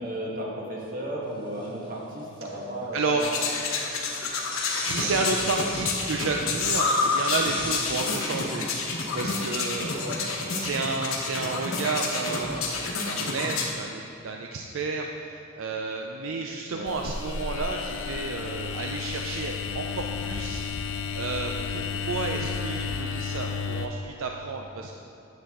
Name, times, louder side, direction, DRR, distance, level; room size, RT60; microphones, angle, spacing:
voice 1, 0.0-3.3 3.9-4.0 10.0-10.2 16.7-16.9, right 1 dB, 40° right, -4 dB, 1.5 m, -34 dB
sound 1, 1.6-1.9 4.2-5.9 6.9-9.5, left 3 dB, 25° left, 1.0 m, -37 dB
voice 2, 2.9-3.2 4.8-10.1 10.5-20.6 21.1-25.0, right 3 dB, 70° right, 2 dB, 0.4 m, -31 dB
sound 2, 3.2-13.7, left 3 dB, 80° left, 1.1 m, -29 dB
sound 3, 16.9-23.9, left 5 dB, 65° left, 0.5 m, -32 dB
9.2 x 7.1 x 3.7 m, 2.7 s
head